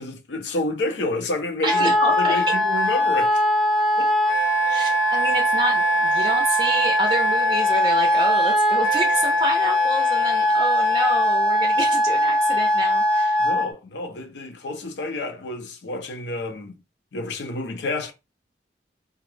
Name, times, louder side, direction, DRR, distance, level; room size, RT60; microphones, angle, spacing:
voice 1, 0.0-3.4 4.0-4.1 13.4-16.8 17.1-18.1, left 2 dB, 80° left, 0.5 m, -29 dB
Wind instrument woodwind instrument, 1.6-13.7, equal, 30° left, 0.7 m, -20 dB
voice 2, 1.6-2.4 4.7-13.4, right 1 dB, 25° right, 0.4 m, -28 dB
2.3 x 2.0 x 3.1 m
head